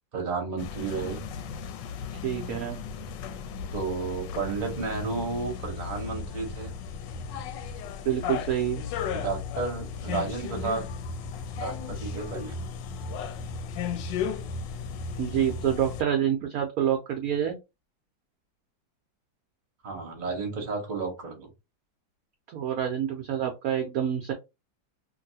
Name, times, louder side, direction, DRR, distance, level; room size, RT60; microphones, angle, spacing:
voice 1, 0.1-1.2 3.7-6.7 9.1-10.9 11.6-12.5 19.8-21.5, right 4 dB, 35° right, 2 dB, 0.8 m, -32 dB
sound 1, 0.6-16.0, left 6 dB, 75° left, 1.1 m, -35 dB
voice 2, 2.2-2.8 8.0-8.8 15.2-17.6 22.5-24.3, right 9 dB, 75° right, 3 dB, 0.8 m, -27 dB
3.0 x 2.6 x 2.7 m, 0.24 s
omnidirectional pair, 2.1 m